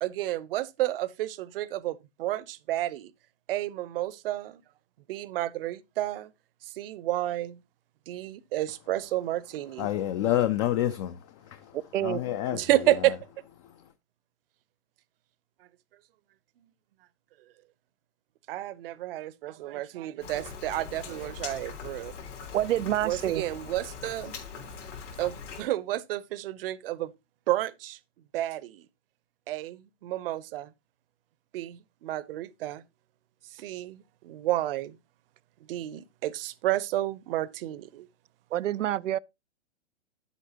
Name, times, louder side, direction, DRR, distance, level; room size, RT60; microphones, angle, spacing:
voice 1, 0.0-3.1 3.5-4.6 5.1-6.3 6.8-7.6 8.1-9.9 12.5-13.2 18.5-22.1 23.0-24.3 25.2-27.1 27.5-28.0 28.3-28.8 29.5-30.7 31.5-32.8 33.5-35.0 35.7-38.1, right 15 dB, 50° right, 0.8 m, -31 dB
voice 2, 9.8-13.1 13.6-13.8, left 12 dB, 30° left, 0.5 m, -29 dB
voice 3, 11.7-12.2 22.5-23.4 38.5-39.2, right 12 dB, 85° right, 0.5 m, -27 dB
Rain, 20.2-25.6, left 6 dB, 80° left, 4.0 m, -41 dB
10.0 x 8.2 x 2.8 m
hypercardioid pair, 140°, 36 cm